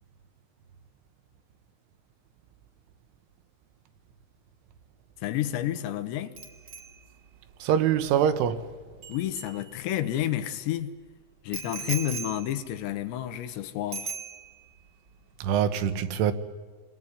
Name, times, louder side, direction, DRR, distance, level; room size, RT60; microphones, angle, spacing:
voice 1, 5.2-6.3 9.1-10.9 11.4-14.1, left 12 dB, 75° left, 3.0 m, -30 dB
Bicycle bell, 6.4-10.2 11.5-13.6 13.9-14.8 15.1-15.3, right 5 dB, 40° right, 1.5 m, -40 dB
voice 2, 7.6-8.7 15.4-16.3, right 9 dB, 85° right, 3.6 m, -24 dB
28.0 x 20.0 x 9.8 m
omnidirectional pair, 5.4 m